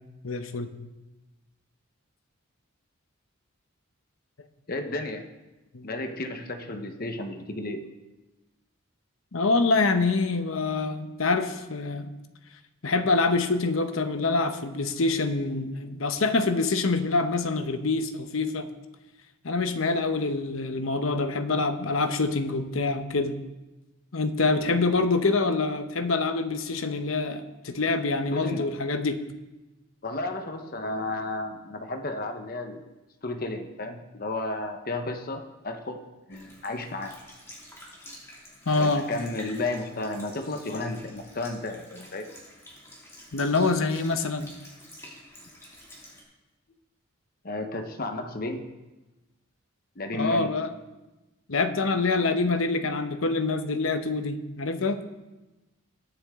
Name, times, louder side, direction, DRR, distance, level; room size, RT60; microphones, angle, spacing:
voice 1, 0.2-0.7 5.7-5.9 9.3-12.1 12.8-18.7 19.4-23.3 24.1-29.2 38.7-39.0 43.3-44.5 50.1-50.7 51.5-55.0, left 3 dB, 85° left, 8 dB, 1.0 m, -25 dB
voice 2, 4.7-5.3 5.8-7.8 28.3-28.7 30.0-32.8 33.2-36.0 36.3-37.1 38.8-42.3 47.4-48.7 50.0-50.5, left 2 dB, 45° left, 5 dB, 1.0 m, -33 dB
Sink (filling or washing) / Liquid, 36.3-46.2, left 1 dB, 15° left, 2.7 m, -48 dB
20.5 x 7.0 x 3.7 m, 1.1 s
head